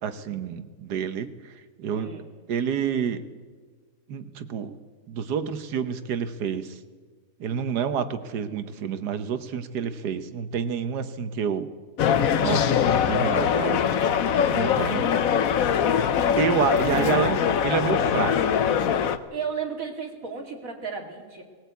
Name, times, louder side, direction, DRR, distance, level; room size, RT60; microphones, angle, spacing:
voice 1, 0.0-1.3 1.8-2.1 2.5-3.2 4.1-4.7 5.1-6.7 7.4-11.7 12.4-13.8 14.4-15.1 16.4-17.4 17.6-18.3, right 7 dB, 75° right, 11 dB, 1.6 m, -28 dB
voice 2, 1.9-2.3 15.0-15.3 16.6-17.1 19.3-21.4, right 6 dB, 55° right, 2 dB, 3.0 m, -35 dB
sound 1, 12.0-19.2, left 8 dB, 60° left, 1.2 m, -22 dB
19.5 x 18.0 x 8.3 m, 1.5 s
omnidirectional pair, 1.7 m